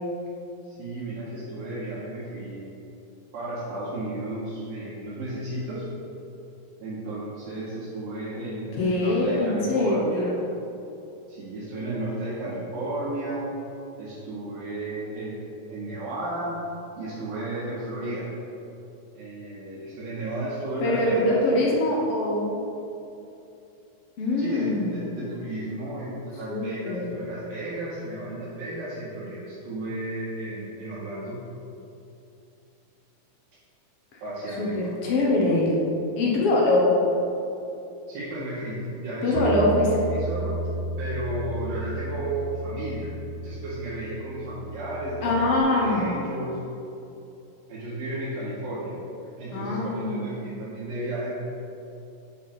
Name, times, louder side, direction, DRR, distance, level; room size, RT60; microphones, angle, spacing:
voice 1, 0.6-2.7 3.3-5.9 6.8-10.4 11.3-13.5 14.0-16.6 17.0-18.3 19.1-21.4 24.4-31.4 34.2-35.5 38.1-39.6 39.9-40.6 41.0-46.6 47.7-49.0 49.4-51.4, right 1 dB, 75° right, -12 dB, 3.8 m, -33 dB
voice 2, 8.8-10.3 20.8-22.5 24.2-25.0 26.5-27.1 34.6-35.7 36.2-36.9 39.2-39.9 45.2-46.2 49.5-50.5, left 2 dB, 75° left, -3 dB, 1.3 m, -23 dB
Bass guitar, 39.4-45.6, right 2 dB, 90° right, 2.5 m, -34 dB
9.5 x 4.2 x 5.8 m, 2.8 s
omnidirectional pair, 4.1 m